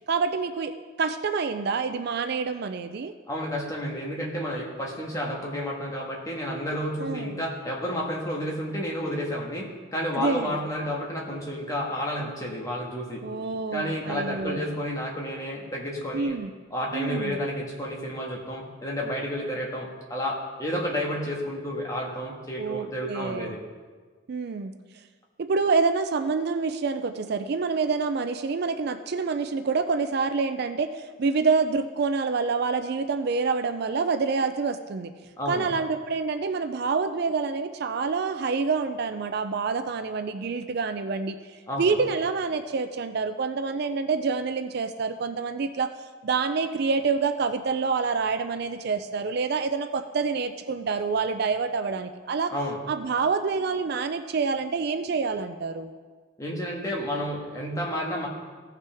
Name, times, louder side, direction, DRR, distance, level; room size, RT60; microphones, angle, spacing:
voice 1, 0.1-0.7 1.0-3.1 7.0-7.4 10.1-10.5 13.2-14.7 16.1-16.5 16.9-17.4 22.6-23.5 24.3-24.7 25.4-35.1 35.5-45.9 46.2-52.5 52.9-55.9, right 4 dB, 55° right, 9 dB, 0.4 m, -27 dB
voice 2, 3.3-13.2 13.7-16.4 16.7-23.6 35.4-35.7 41.7-41.8 52.5-52.8 56.4-58.3, equal, 15° left, -2 dB, 1.5 m, -31 dB
16.0 x 5.7 x 3.5 m, 1.5 s
head